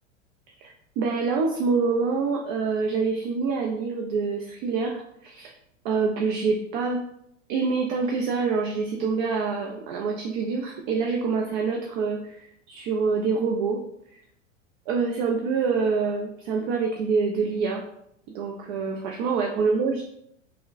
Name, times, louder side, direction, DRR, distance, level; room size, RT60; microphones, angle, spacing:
voice 1, 0.6-5.5 5.8-7.0 7.5-13.8 14.1-14.2 14.9-17.8 18.3-20.0, right 4 dB, 40° right, 1 dB, 0.4 m, -26 dB
3.6 x 2.1 x 2.5 m, 0.76 s
figure-of-eight pair, 90°, 39 cm